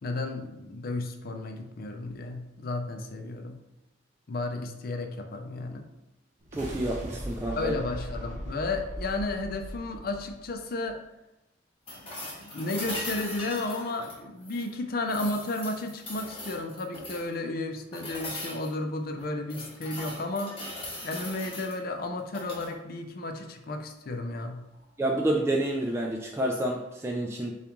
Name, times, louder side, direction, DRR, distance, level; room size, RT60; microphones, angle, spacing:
voice 1, 0.0-3.6 4.3-5.9 7.6-11.0 11.9-12.0 12.4-20.6 21.0-24.6, left 2 dB, 50° left, 5 dB, 0.5 m, -33 dB
sound 1, 6.4-10.9, equal, 40° right, 0.8 m, -39 dB
voice 2, 6.5-7.7 25.0-27.6, right 1 dB, 15° right, 0 dB, 0.3 m, -29 dB
sound 2, 11.9-14.7 15.1-17.3 17.9-18.7 19.2-21.8 22.3-22.7 24.7-24.8, left 1 dB, 30° left, 1.3 m, -39 dB
6.9 x 2.4 x 3.0 m, 0.97 s
head